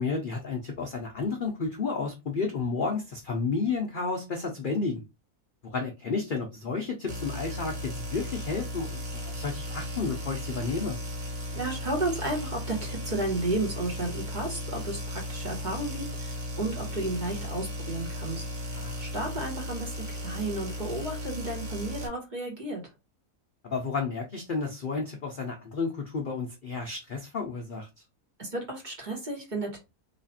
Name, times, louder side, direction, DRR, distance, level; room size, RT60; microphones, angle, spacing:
voice 1, 0.0-5.0 5.6-11.0 18.7-19.0 23.6-27.9, left 4 dB, 55° left, 0.5 m, -31 dB
sound 1, 7.1-22.1, left 1 dB, 60° right, 1.4 m, -36 dB
voice 2, 11.5-18.4 19.0-22.8 28.4-29.8, right 2 dB, 30° right, 1.2 m, -33 dB
3.2 x 2.4 x 4.1 m
omnidirectional pair, 1.6 m